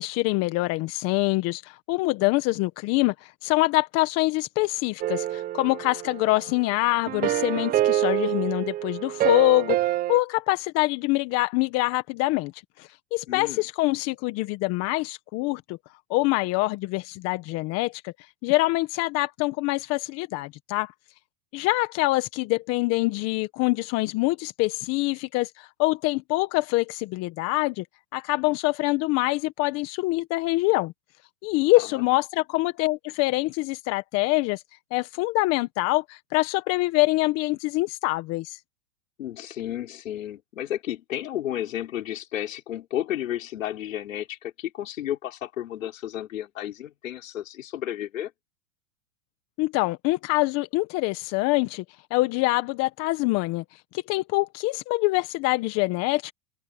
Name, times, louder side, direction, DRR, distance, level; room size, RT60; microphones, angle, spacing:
voice 1, 0.0-9.8 10.1-12.5 13.1-15.8 16.1-18.1 18.4-20.9 21.5-27.8 28.1-30.9 31.4-34.6 34.9-38.6 49.6-51.8 52.1-53.6 54.1-56.3, left 21 dB, 40° left, 1.5 m, -25 dB
sound 1, 5.0-6.5 7.1-10.2, right 13 dB, 25° right, 0.7 m, -26 dB
voice 2, 13.3-13.6 31.7-32.0 39.2-48.3, left 12 dB, 85° left, 4.8 m, -32 dB
open air
hypercardioid pair, 135°, 38 cm